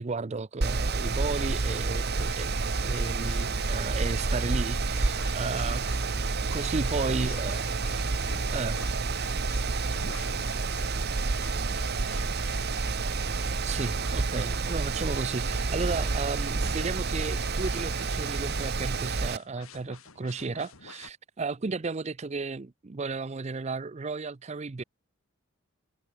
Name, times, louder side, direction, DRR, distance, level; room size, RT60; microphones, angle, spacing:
voice 1, 0.0-2.5 2.8-5.8 6.5-7.5 8.5-8.8 13.6-24.8, right 4 dB, 30° right, 0.5 m, -33 dB
Mechanical fan, 0.6-19.4, right 3 dB, 50° right, 0.9 m, -29 dB
sound 1, 2.2-21.1, left 5 dB, 80° left, 2.4 m, -49 dB
voice 2, 5.5-5.9 6.9-13.2, left 5 dB, 45° left, 6.9 m, -53 dB
head